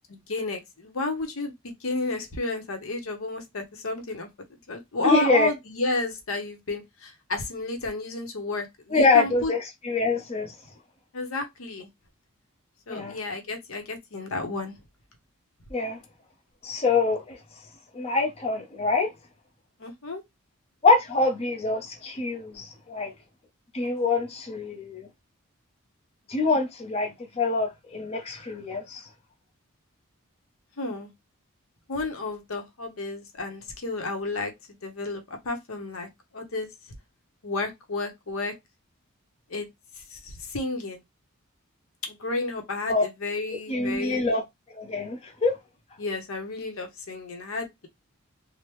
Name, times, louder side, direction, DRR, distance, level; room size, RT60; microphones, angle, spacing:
voice 1, 0.1-9.5 11.1-11.9 12.9-14.7 19.8-20.2 30.8-31.1 31.9-34.5 34.8-36.9 37.4-38.5 39.5-39.7 40.1-41.0 42.0-44.2 46.0-47.9, left 2 dB, 75° left, 0.8 m, -32 dB
voice 2, 5.0-5.5 8.9-10.5 12.9-13.2 15.7-16.0 16.6-17.4 17.9-19.1 20.8-23.1 23.7-25.1 26.3-29.0 42.9-43.0 43.7-44.4 44.7-45.6, left 3 dB, 30° left, 0.7 m, -25 dB
3.3 x 2.1 x 3.0 m
head